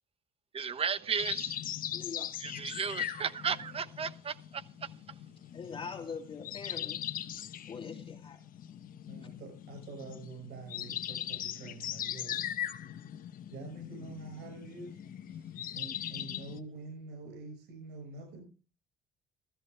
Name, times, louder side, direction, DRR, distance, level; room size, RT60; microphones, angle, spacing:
voice 1, 0.5-1.6 2.4-4.9, right 6 dB, 35° right, 0.9 m, -35 dB
sound 1, 1.2-16.6, left 10 dB, 55° left, 1.1 m, -40 dB
voice 2, 1.9-2.3 5.5-7.0 7.7-8.4, left 5 dB, 30° left, 2.9 m, -42 dB
voice 3, 9.1-12.4 13.5-15.0 15.7-18.4, right 4 dB, 80° right, 5.7 m, -46 dB
15.0 x 13.5 x 3.3 m
cardioid pair, 110°, 17 cm